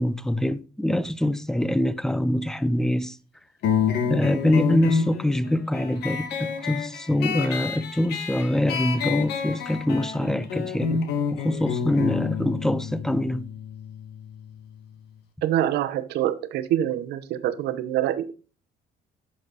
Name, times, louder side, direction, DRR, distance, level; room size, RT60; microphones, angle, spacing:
voice 1, 0.0-3.2 4.1-13.5, left 1 dB, 5° left, 0.5 m, -24 dB
sound 1, 3.6-14.7, left 6 dB, 75° left, 1.7 m, -29 dB
voice 2, 15.4-18.3, right 12 dB, 75° right, 0.9 m, -25 dB
10.0 x 6.4 x 4.0 m
cardioid pair, 110°, 17 cm